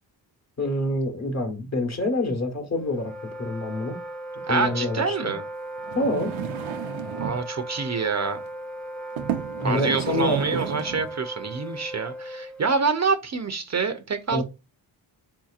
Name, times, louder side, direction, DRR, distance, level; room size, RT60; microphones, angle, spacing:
voice 1, 0.6-3.1 3.4-4.0 4.5-5.3 5.9-6.3 9.6-10.8 14.3-14.4, left 1 dB, 35° left, 1.1 m, -26 dB
Wind instrument woodwind instrument, 2.8-12.7, right 1 dB, ahead, 0.6 m, -37 dB
voice 2, 4.5-5.4 7.2-8.4 9.6-14.4, right 4 dB, 35° right, 0.6 m, -26 dB
sound 1, 5.8-7.5 8.3-8.5 9.2-11.1 11.8-11.9, right 9 dB, 90° right, 0.6 m, -33 dB
3.7 x 2.8 x 2.4 m
cardioid pair, 65°, 46 cm